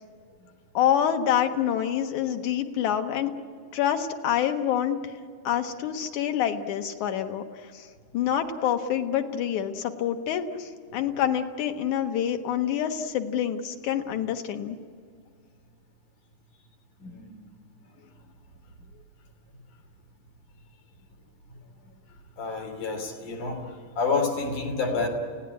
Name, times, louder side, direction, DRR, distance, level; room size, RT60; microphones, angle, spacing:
voice 1, 0.7-3.3 3.7-5.0 5.4-7.9 8.1-14.8, left 9 dB, 75° left, 6 dB, 2.7 m, -27 dB
voice 2, 17.0-17.5 22.4-25.1, left 4 dB, 90° left, 3 dB, 4.6 m, -29 dB
29.0 x 17.0 x 9.7 m, 2.2 s
omnidirectional pair, 3.5 m